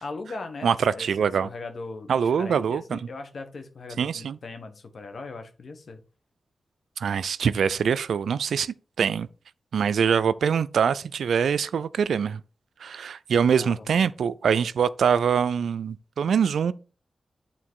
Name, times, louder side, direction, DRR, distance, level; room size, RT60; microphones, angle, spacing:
voice 1, 0.0-2.1 2.4-6.0 13.6-13.9, left 3 dB, 65° left, 1.3 m, -39 dB
voice 2, 0.6-1.5 2.1-3.0 4.0-4.4 7.0-9.3 9.7-12.4 12.8-16.7, right 7 dB, 85° right, 0.3 m, -24 dB
8.7 x 3.8 x 4.6 m
cardioid pair, 45°, 0 cm